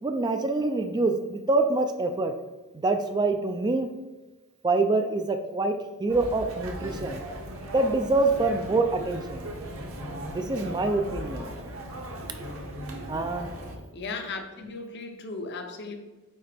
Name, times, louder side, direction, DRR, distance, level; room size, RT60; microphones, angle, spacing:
voice 1, 0.0-2.3 2.7-3.9 4.6-7.3 7.7-9.5 10.3-11.5 13.1-13.5, right 3 dB, 20° right, 7 dB, 0.3 m, -25 dB
sound 1, 6.1-13.8, right 1 dB, 65° right, 1.1 m, -37 dB
voice 2, 13.9-15.9, left 3 dB, 50° left, 5 dB, 0.7 m, -36 dB
8.6 x 3.2 x 3.4 m, 1.2 s
head